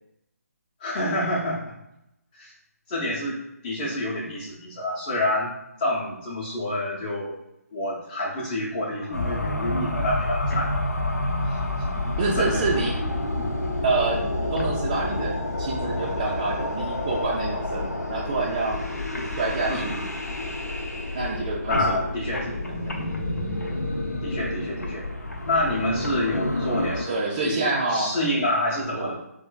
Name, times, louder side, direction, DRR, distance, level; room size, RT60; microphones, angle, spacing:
voice 1, 0.8-1.7 2.3-2.5 2.9-5.5 5.8-7.3 7.7-10.7 11.5-11.6 12.4-12.7 13.3-13.5 19.7-20.0 21.7-22.6 22.9-23.2 24.2-25.1 25.4-29.1, left 1 dB, 20° left, -7 dB, 0.6 m, -28 dB
sound 1, 9.1-27.0, left 2 dB, 75° left, 0.6 m, -29 dB
voice 2, 12.2-12.9 13.8-18.8 19.4-20.0 21.1-22.0 22.8-22.9 27.1-28.1 28.9-29.1, right 3 dB, 25° right, -5 dB, 0.3 m, -27 dB
4.3 x 2.4 x 2.2 m, 0.84 s
figure-of-eight pair, 145°, 9 cm